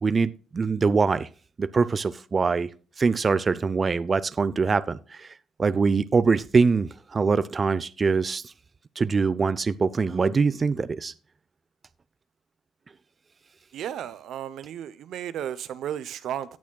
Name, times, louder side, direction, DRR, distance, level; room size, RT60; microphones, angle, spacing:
voice 1, 0.0-1.3 1.6-2.7 3.0-8.5 9.0-11.1, right 4 dB, 35° right, 0.5 m, -23 dB
voice 2, 13.7-16.6, right 10 dB, 75° right, 0.7 m, -34 dB
17.5 x 6.2 x 2.3 m
cardioid pair, 90°, 0 cm